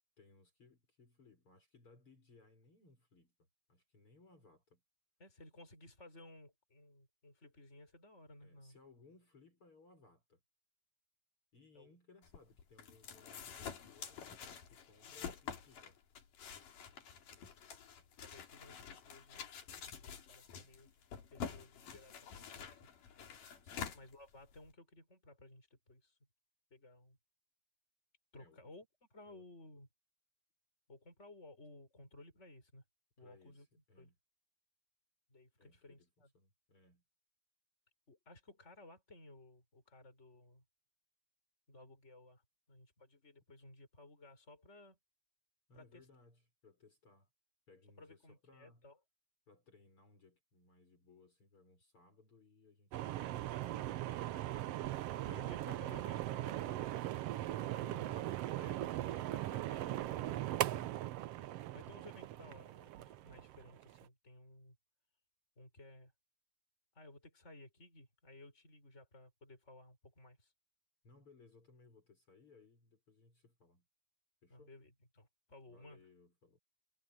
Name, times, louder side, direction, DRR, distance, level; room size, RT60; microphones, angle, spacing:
voice 1, 0.2-4.8 8.4-10.4 11.5-14.2 14.7-16.0 23.6-24.0 28.4-28.7 29.3-29.4 33.2-34.1 35.6-36.1 36.3-37.0 45.7-47.3 47.7-48.8 49.5-55.5 57.8-58.1 60.6-61.0 71.0-73.9 74.4-74.7 75.7-76.6, left 3 dB, 40° left, 6.6 m, -65 dB
voice 2, 5.2-8.8 11.7-11.9 15.2-15.4 18.2-19.4 19.9-20.9 21.3-22.8 23.9-26.2 26.7-27.2 28.3-29.9 30.9-32.8 33.2-33.7 34.0-34.1 35.3-36.3 38.1-40.6 41.7-42.4 42.7-45.0 45.7-46.1 48.0-49.0 55.1-56.8 57.6-58.3 58.6-60.7 61.7-64.8 65.6-66.1 66.9-70.5 74.5-76.1, left 2 dB, 20° left, 6.5 m, -58 dB
sound 1, 12.2-24.7, left 7 dB, 80° left, 4.2 m, -48 dB
sound 2, 52.9-64.0, right 14 dB, 85° right, 1.3 m, -39 dB
omnidirectional pair, 3.7 m